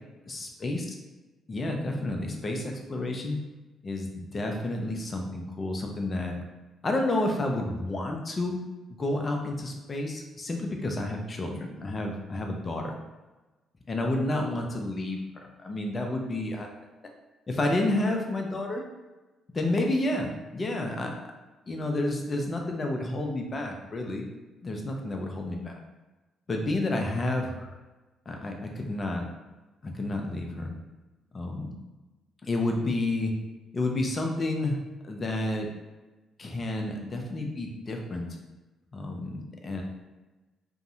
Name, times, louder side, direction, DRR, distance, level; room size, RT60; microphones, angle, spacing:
voice 1, 0.2-0.9 1.5-3.4 3.8-6.4 6.8-8.6 8.9-12.9 13.9-16.7 17.5-18.8 19.5-21.1 21.7-24.3 24.6-25.8 26.5-27.6 28.3-29.3 29.8-30.7 31.3-31.7 32.4-33.3 33.7-34.8 35.0-35.7 36.4-38.3 38.9-39.8, left 2 dB, 35° left, 2 dB, 0.5 m, -30 dB
2.6 x 2.0 x 2.6 m, 1.2 s
figure-of-eight pair, 45°, 0 cm